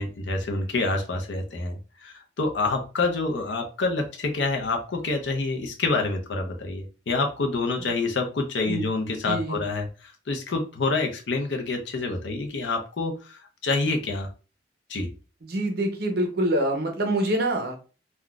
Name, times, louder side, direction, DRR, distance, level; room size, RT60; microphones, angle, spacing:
voice 1, 0.0-14.3 14.9-15.1, left 3 dB, 75° left, 3 dB, 0.6 m, -27 dB
voice 2, 9.3-9.6 15.4-17.8, right 1 dB, 55° right, 4 dB, 0.7 m, -25 dB
3.7 x 2.2 x 2.3 m, 0.34 s
head